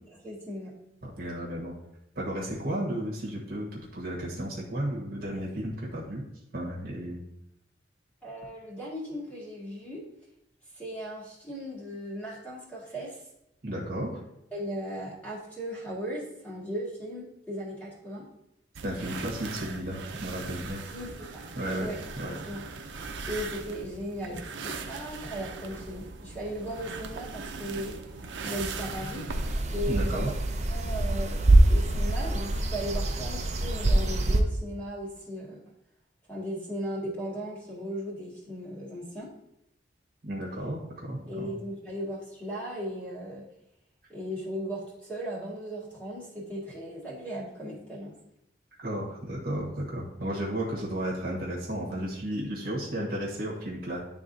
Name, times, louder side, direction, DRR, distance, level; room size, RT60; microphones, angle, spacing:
voice 1, 0.1-0.7 8.2-10.0 10.7-13.2 14.5-18.3 20.9-21.4 21.8-22.0 22.4-22.6 23.2-27.9 28.4-29.2 29.7-30.3 30.7-35.6 36.3-39.3 41.3-43.4 44.1-48.1, equal, 10° left, -6 dB, 1.9 m, -37 dB
voice 2, 1.0-1.7 2.1-6.2 6.5-7.2 13.6-14.1 18.8-20.8 21.5-21.9 22.1-22.3 29.9-30.3 40.2-41.5 48.8-54.0, right 1 dB, 55° right, -3 dB, 1.4 m, -33 dB
sound 1, 18.8-29.6, right 4 dB, 90° right, 0.6 m, -39 dB
sound 2, 29.3-34.4, right 1 dB, 40° right, 0.6 m, -24 dB
10.5 x 3.6 x 2.7 m, 0.82 s
head